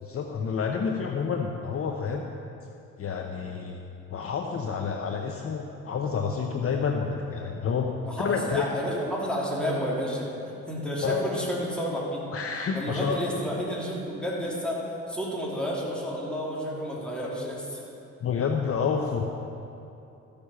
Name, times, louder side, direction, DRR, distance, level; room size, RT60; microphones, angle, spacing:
voice 1, 0.0-2.3 3.0-3.8 4.1-8.7 11.0-11.3 12.0-12.1 12.3-13.2 18.2-19.2, left 6 dB, 50° left, 3 dB, 0.8 m, -29 dB
voice 2, 8.0-10.3 10.7-12.3 12.7-17.8, equal, 5° left, -5 dB, 3.0 m, -31 dB
14.0 x 6.9 x 5.6 m, 2.8 s
cardioid pair, 90°, 30 cm